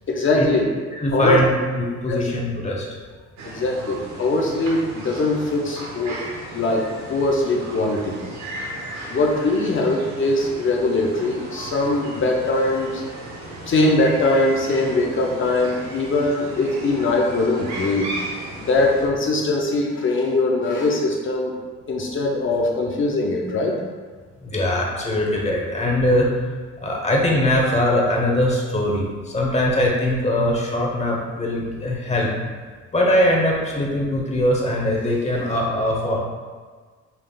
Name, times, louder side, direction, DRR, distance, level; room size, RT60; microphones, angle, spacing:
voice 1, 0.1-0.7 1.1-1.4 2.1-2.3 3.4-6.2 6.5-8.2 9.1-13.0 13.7-18.1 18.6-21.5 21.9-23.8, left 2 dB, 40° left, -1 dB, 0.6 m, -21 dB
voice 2, 0.9-3.0 24.4-26.3 26.8-32.3 32.9-36.2, left 1 dB, 20° left, -2 dB, 1.0 m, -21 dB
sound 1, 3.4-19.1, right 2 dB, 65° right, 1.0 m, -36 dB
5.5 x 3.2 x 2.3 m, 1.5 s
cardioid pair, 90°, 30 cm